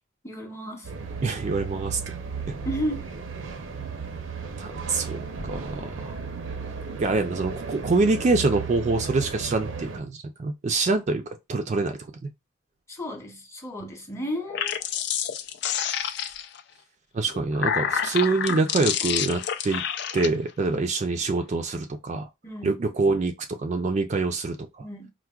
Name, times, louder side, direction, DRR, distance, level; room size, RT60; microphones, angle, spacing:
voice 1, 0.2-0.9 2.6-3.1 12.9-14.8 22.4-22.8 24.8-25.1, equal, 15° left, 0.7 m, -33 dB
sound 1, 0.8-10.0, right 5 dB, 85° right, 0.6 m, -35 dB
voice 2, 1.2-2.0 2.5-2.6 4.6-6.5 6.9-12.3 17.1-19.8 20.1-22.3 22.6-23.3 23.6-24.9, right 3 dB, 35° right, 0.3 m, -25 dB
sound 2, 14.4-16.6 17.3-20.3, left 8 dB, 60° left, 0.3 m, -28 dB
4.4 x 2.1 x 2.3 m
head